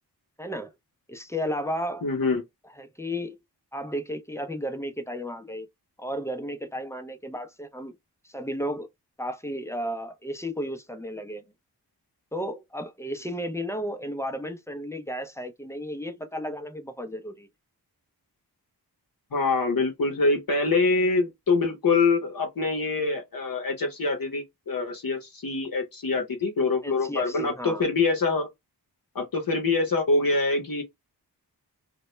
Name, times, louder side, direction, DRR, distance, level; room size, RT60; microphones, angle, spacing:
voice 1, 0.4-0.7 1.1-2.0 2.8-3.4 3.7-5.7 6.0-7.9 8.2-8.9 9.2-11.4 12.3-17.5 26.8-27.8, equal, 5° left, 0.4 m, -33 dB
voice 2, 2.0-2.4 19.3-28.5 29.1-30.8, left 3 dB, 55° left, 0.7 m, -25 dB
2.2 x 2.0 x 3.0 m
wide cardioid pair, 75°, 40 cm